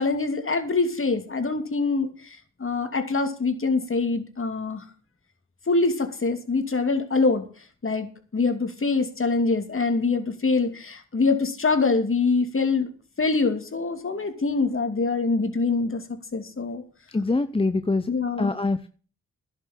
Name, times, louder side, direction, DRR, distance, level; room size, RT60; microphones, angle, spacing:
voice 1, 0.0-4.8 5.7-7.5 7.8-12.9 13.2-16.8 18.1-18.5, left 4 dB, 40° left, 7 dB, 2.7 m, -24 dB
voice 2, 17.1-18.1 18.4-18.9, left 3 dB, 15° left, 11 dB, 0.8 m, -24 dB
11.5 x 7.0 x 8.5 m, 0.39 s
supercardioid pair, 50°, 31 cm